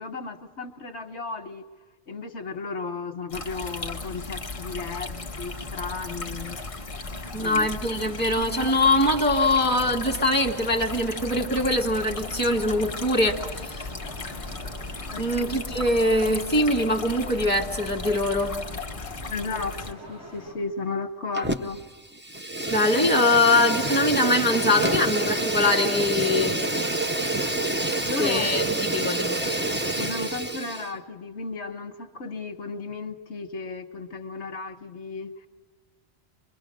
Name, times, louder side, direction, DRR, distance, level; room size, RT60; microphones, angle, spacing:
voice 1, 0.0-1.6 2.1-6.6 7.4-7.7 8.0-8.1 15.1-15.5 19.3-21.8 28.0-28.5 30.0-35.5, left 4 dB, 80° left, 6 dB, 1.3 m, -34 dB
sound 1, 3.3-19.9, left 3 dB, 30° left, 1.1 m, -36 dB
voice 2, 7.3-13.4 13.6-13.9 15.2-18.6 22.7-26.6 28.2-28.6 28.9-29.4, left 1 dB, 10° left, -1 dB, 1.7 m, -23 dB
sound 2, 9.3-20.5, equal, 85° right, 8.1 m, -45 dB
Fire, 21.3-21.9 22.2-30.9, right 2 dB, 15° right, 0.5 m, -27 dB
25.5 x 22.5 x 6.5 m, 1.3 s
omnidirectional pair, 1.1 m